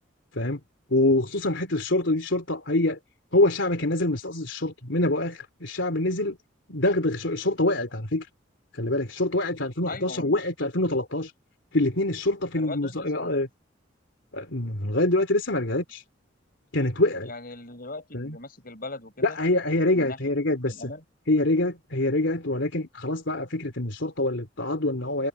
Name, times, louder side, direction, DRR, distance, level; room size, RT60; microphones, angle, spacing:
voice 1, 0.9-3.0 3.3-6.4 6.7-8.3 8.7-11.3 11.7-13.5 14.3-16.0 16.7-17.3 18.1-18.4 19.2-20.7 21.3-25.3, left 2 dB, 75° left, 3.2 m, -25 dB
voice 2, 9.9-10.4 12.6-13.4 17.2-19.4 19.9-20.2 20.7-21.0, left 2 dB, 50° left, 5.0 m, -39 dB
head